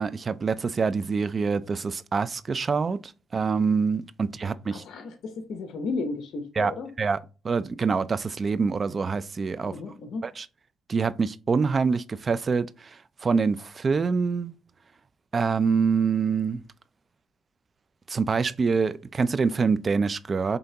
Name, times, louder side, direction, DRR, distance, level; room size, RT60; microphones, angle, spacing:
voice 1, 0.0-3.0 3.3-4.8 6.6-6.7 7.0-7.2 7.4-9.8 10.2-10.5 10.9-12.7 13.2-14.5 15.3-16.6 18.1-20.6, right 5 dB, 35° right, 0.4 m, -25 dB
voice 2, 4.7-6.9 9.6-10.3, left 3 dB, 70° left, 0.8 m, -34 dB
5.3 x 3.4 x 2.8 m
cardioid pair, 90°, 0 cm